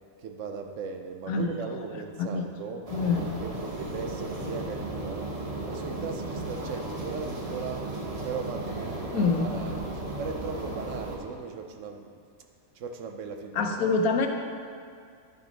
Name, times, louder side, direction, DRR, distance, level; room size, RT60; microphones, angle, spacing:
voice 1, 0.2-2.9 3.4-5.3 5.7-7.9 8.2-12.1 12.7-14.0, right 5 dB, 65° right, 5 dB, 0.9 m, -38 dB
voice 2, 2.9-3.3 9.1-9.5 13.6-14.3, left 4 dB, 85° left, 5 dB, 1.2 m, -25 dB
sound 1, 2.9-11.2, right 2 dB, 30° right, 0.9 m, -35 dB
10.0 x 6.1 x 4.0 m, 2.3 s
omnidirectional pair, 1.5 m